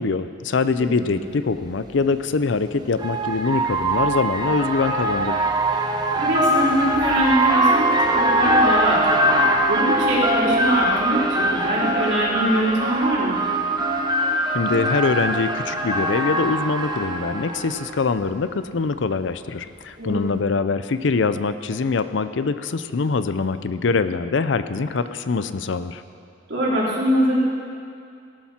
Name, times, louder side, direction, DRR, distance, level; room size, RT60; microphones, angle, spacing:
voice 1, 0.0-5.5 14.5-26.0, left 4 dB, 70° left, 12 dB, 0.5 m, -23 dB
sound 1, 0.8-0.9 2.3-17.9, right 1 dB, 20° right, 0.9 m, -22 dB
voice 2, 6.2-13.4 20.0-20.3 26.5-27.4, right 1 dB, 65° right, -6 dB, 3.7 m, -23 dB
17.5 x 11.5 x 4.3 m, 2.4 s
head